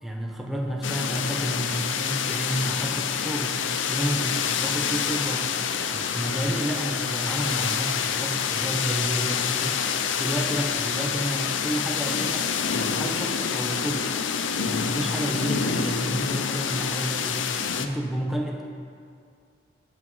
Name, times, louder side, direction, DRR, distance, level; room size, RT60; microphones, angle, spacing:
voice 1, 0.0-5.5 5.8-9.9 10.2-14.1 14.6-17.4 17.8-18.6, equal, ahead, -1 dB, 1.1 m, -30 dB
sound 1, 0.8-17.9, left 7 dB, 80° left, 0.6 m, -27 dB
sound 2, 3.9-15.7, right 1 dB, 30° right, 2.8 m, -48 dB
18.5 x 6.3 x 4.0 m, 2.3 s
head